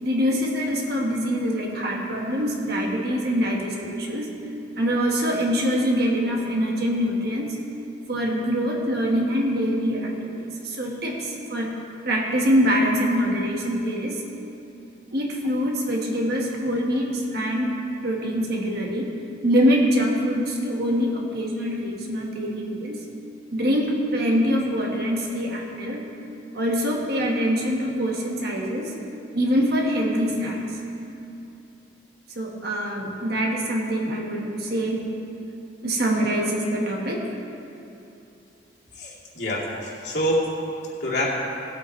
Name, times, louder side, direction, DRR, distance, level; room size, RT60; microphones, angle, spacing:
voice 1, 0.0-4.3 4.8-7.6 8.1-11.7 12.0-14.2 15.1-19.1 19.4-23.1 23.5-26.0 26.5-28.9 29.3-30.8 32.3-35.1 35.8-37.3, equal, 55° right, -1 dB, 1.6 m, -24 dB
voice 2, 39.0-40.5 41.0-41.3, equal, 60° left, -5 dB, 2.5 m, -26 dB
19.0 x 8.6 x 3.2 m, 2.8 s
head